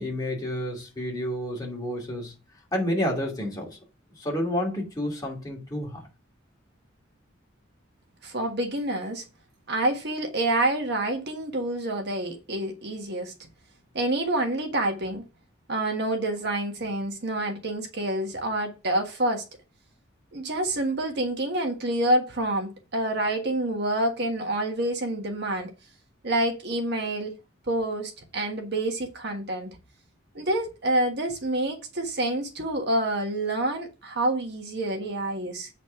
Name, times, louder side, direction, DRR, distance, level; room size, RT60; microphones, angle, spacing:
voice 1, 0.0-2.4 2.7-3.8 4.2-6.1, left 1 dB, 20° left, 2.7 m, -30 dB
voice 2, 8.2-9.2 9.7-13.3 13.9-15.2 15.7-19.4 20.3-25.7 26.2-27.3 27.7-29.8 30.3-35.7, right 1 dB, 55° right, 1.5 m, -27 dB
8.2 x 4.2 x 5.8 m
head